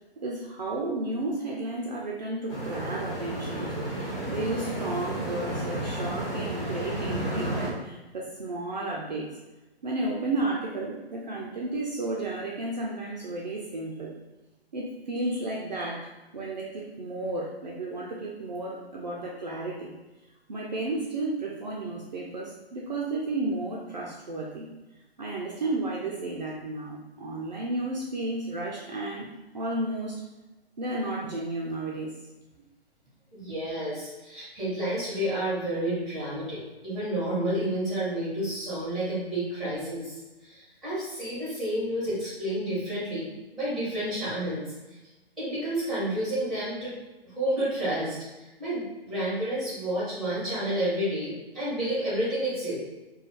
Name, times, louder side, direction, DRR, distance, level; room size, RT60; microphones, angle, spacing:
voice 1, 0.2-9.3 9.8-14.1 14.7-16.1 16.3-19.9 20.5-24.7 25.2-29.3 29.5-30.2 30.8-32.1, right 2 dB, 45° right, -3 dB, 0.4 m, -32 dB
sound 1, 2.5-7.7, right 1 dB, 25° left, 0.8 m, -32 dB
voice 2, 33.3-40.2 40.4-44.6 45.4-46.9 47.2-52.8, right 1 dB, ahead, -9 dB, 1.0 m, -30 dB
2.4 x 2.2 x 3.5 m, 1.1 s
figure-of-eight pair, 130°, 31 cm